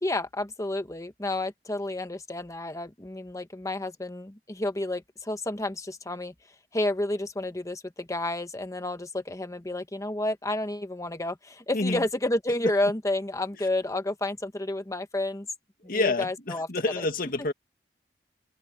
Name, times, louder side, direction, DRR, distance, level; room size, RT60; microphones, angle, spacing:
voice 1, 0.0-6.3 6.7-15.5 15.8-16.7 17.0-17.1, left 1 dB, 20° left, 1.1 m, -30 dB
voice 2, 15.9-17.5, left 2 dB, 55° left, 2.2 m, -28 dB
head